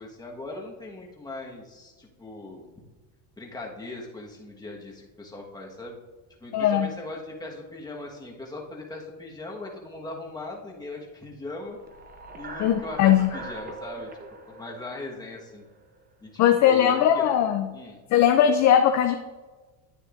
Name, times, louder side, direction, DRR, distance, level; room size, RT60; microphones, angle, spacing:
voice 1, 0.0-2.7 3.4-6.0 6.4-11.8 12.4-14.1 14.4-15.6 16.2-17.3 17.7-18.0, left 2 dB, 10° left, -2 dB, 1.3 m, -39 dB
voice 2, 6.5-6.9 12.6-13.3 16.4-17.7 18.1-19.1, left 10 dB, 40° left, 7 dB, 0.4 m, -19 dB
sound 1, 11.7-16.0, right 2 dB, 20° right, 0.8 m, -42 dB
10.0 x 8.7 x 2.5 m, 1.3 s
cardioid pair, 135°, 49 cm